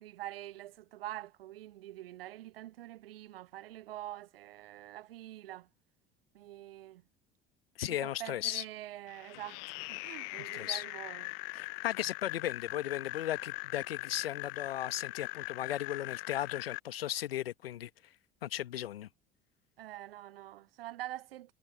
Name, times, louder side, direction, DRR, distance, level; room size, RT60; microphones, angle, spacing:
voice 1, 0.0-5.7 6.3-7.0 7.9-11.3 19.8-21.5, right 14 dB, 70° right, 0.9 m, -45 dB
voice 2, 7.8-8.6 10.4-10.8 11.5-17.9 18.4-19.1, left 12 dB, 75° left, 1.4 m, -36 dB
sound 1, 9.1-16.8, left 38 dB, 55° left, 0.6 m, -41 dB
figure-of-eight pair, 60°, 30 cm